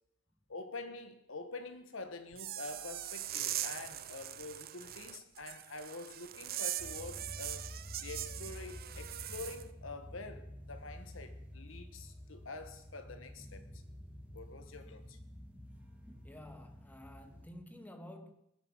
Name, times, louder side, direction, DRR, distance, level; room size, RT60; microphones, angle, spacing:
voice 1, 0.5-7.7 8.0-13.7 14.3-15.2, left 3 dB, 75° left, 1.4 m, -46 dB
sound 1, 2.3-9.6, right 13 dB, 50° right, 0.6 m, -41 dB
sound 2, 6.8-17.5, equal, 5° right, 2.2 m, -50 dB
voice 2, 16.2-18.3, left 1 dB, 10° left, 1.2 m, -51 dB
20.5 x 7.7 x 5.7 m
head